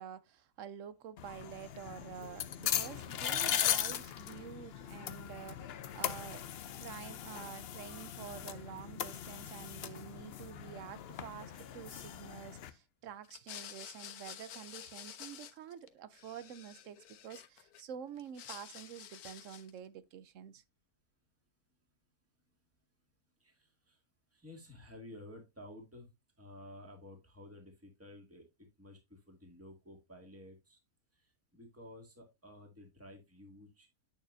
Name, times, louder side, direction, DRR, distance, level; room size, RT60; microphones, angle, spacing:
voice 1, 0.0-6.4 6.8-20.6, right 9 dB, 65° right, 0.9 m, -48 dB
sound 1, 1.2-12.7, left 10 dB, 60° left, 0.7 m, -39 dB
sound 2, 13.2-15.9 16.1-17.8 18.2-19.8, left 10 dB, 90° left, 1.3 m, -50 dB
voice 2, 23.4-24.0 24.3-26.1 26.4-30.8 31.1-33.9, left 1 dB, 10° right, 2.1 m, -53 dB
9.2 x 6.6 x 2.6 m
omnidirectional pair, 1.6 m